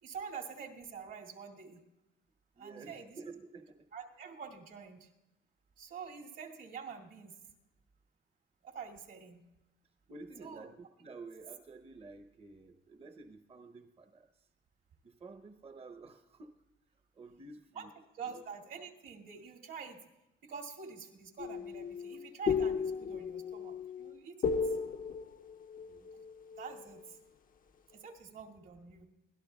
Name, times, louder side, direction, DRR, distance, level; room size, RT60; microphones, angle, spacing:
voice 1, 0.0-1.8 2.6-3.2 3.9-5.1 5.8-7.3 8.6-9.4 10.4-10.7 17.7-17.9 18.1-20.0 20.4-24.7 26.1-26.2 26.6-27.2 27.9-29.1, right 6 dB, 75° right, -1 dB, 2.3 m, -46 dB
voice 2, 2.5-3.9 10.1-14.5 15.0-16.5 17.1-17.9 18.2-18.4 25.9-26.2, right 3 dB, 30° right, 8 dB, 0.7 m, -51 dB
sound 1, 21.4-27.0, left 5 dB, 45° left, 0.5 m, -35 dB
24.0 x 17.5 x 2.3 m, 0.94 s
cardioid pair, 90°, 20 cm